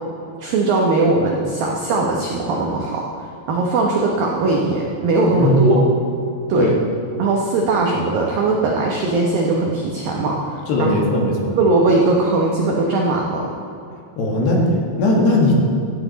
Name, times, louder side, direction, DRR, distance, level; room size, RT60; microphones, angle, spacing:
voice 1, 0.4-5.8 6.5-6.7 7.2-10.9 11.5-13.5, right 3 dB, 85° right, -1 dB, 2.0 m, -19 dB
voice 2, 5.3-5.9 6.6-6.7 10.7-11.6 14.2-15.5, left 1 dB, 65° left, -1 dB, 3.2 m, -18 dB
15.5 x 14.0 x 4.0 m, 2.6 s
omnidirectional pair, 5.9 m